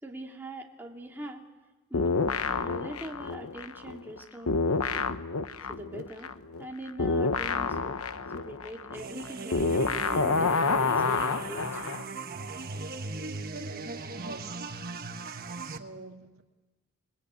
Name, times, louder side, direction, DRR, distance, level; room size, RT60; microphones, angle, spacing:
voice 1, 0.0-1.4 1.9-2.1 2.5-5.2 5.7-6.3 6.6-8.0 8.3-9.8 10.1-11.8, right 1 dB, 10° right, 0 dB, 2.3 m, -43 dB
sound 1, 1.9-4.2 4.5-12.0, left 4 dB, 80° left, 1.1 m, -28 dB
sound 2, 8.9-15.8, right 3 dB, 45° right, 1.3 m, -38 dB
voice 2, 14.1-14.7 15.2-16.4, right 3 dB, 65° right, 4 dB, 2.1 m, -45 dB
28.0 x 21.0 x 8.6 m, 1.1 s
head